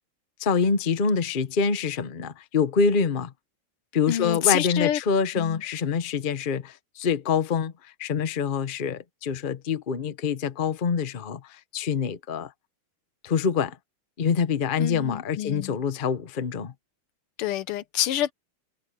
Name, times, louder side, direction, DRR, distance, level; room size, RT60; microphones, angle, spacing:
voice 1, 0.4-3.3 3.9-7.7 8.0-12.5 13.2-13.8 14.2-16.7, left 6 dB, 40° left, 0.8 m, -25 dB
voice 2, 4.1-5.0 5.3-5.6 14.8-15.8 17.4-18.3, left 12 dB, 85° left, 1.8 m, -27 dB
omnidirectional pair, 2.4 m